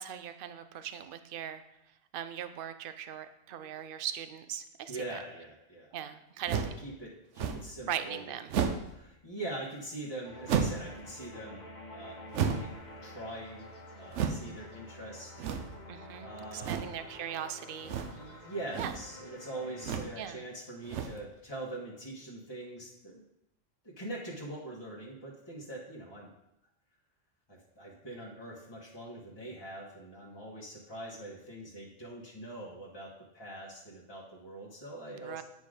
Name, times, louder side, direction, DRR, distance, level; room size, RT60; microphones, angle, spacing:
voice 1, 0.0-1.6 2.1-5.2 5.9-6.7 7.9-8.5 15.9-18.0 18.8-18.9 20.2-20.4 35.2-35.4, right 9 dB, 60° right, 10 dB, 0.7 m, -39 dB
voice 2, 4.9-5.9 6.6-8.4 8.9-13.7 13.9-15.4 16.2-16.9 18.0-23.2 23.8-26.3 27.5-35.4, right 1 dB, 20° left, -5 dB, 1.3 m, -43 dB
sound 1, 6.5-6.8 7.4-7.8 8.5-8.9 10.5-10.9 12.3-12.8 14.1-14.5 15.4-15.8 16.6-17.0 17.8-18.3 18.6-19.1 19.8-20.2 20.8-21.3, right 7 dB, 80° right, 1.0 m, -32 dB
sound 2, 10.2-20.0, left 1 dB, 40° left, 1.3 m, -49 dB
9.4 x 4.0 x 4.9 m, 0.83 s
omnidirectional pair, 1.2 m